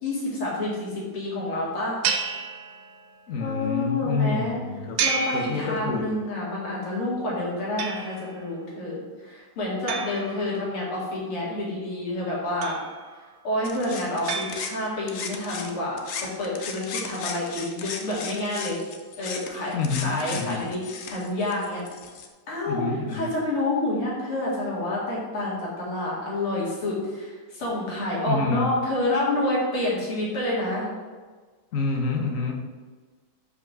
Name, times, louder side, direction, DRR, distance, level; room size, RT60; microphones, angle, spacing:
voice 1, 0.0-2.0 3.4-4.6 5.0-12.8 13.4-18.8 19.2-20.8 21.1-21.8 22.5-30.9, left 1 dB, 85° left, -5 dB, 3.1 m, -28 dB
sound 1, 2.0-3.3 5.0-6.3 7.8-8.5 9.9-11.0 12.6-13.3 14.3-15.2, right 6 dB, 70° right, 1.3 m, -31 dB
voice 2, 3.3-5.0 5.3-6.1 19.7-20.6 22.7-23.3 28.2-28.7 31.7-32.5, left 4 dB, 50° left, 2 dB, 1.1 m, -27 dB
sound 2, 13.6-15.7 16.0-22.3, left 5 dB, 70° left, 0.7 m, -37 dB
5.6 x 5.1 x 6.0 m, 1.4 s
omnidirectional pair, 2.3 m